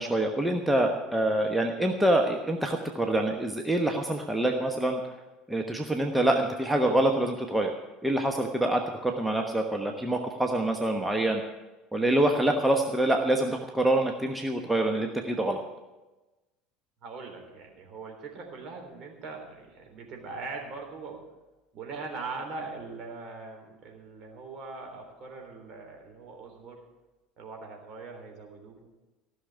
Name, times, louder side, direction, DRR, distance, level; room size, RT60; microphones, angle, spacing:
voice 1, 0.0-5.0 5.5-7.7 8.0-11.4 11.9-15.6, right 1 dB, 5° right, 3 dB, 1.2 m, -26 dB
voice 2, 17.0-21.2 21.7-26.8 27.4-28.9, right 4 dB, 45° right, 2 dB, 3.6 m, -41 dB
15.0 x 6.5 x 9.4 m, 1.1 s
figure-of-eight pair, 65°, 0 cm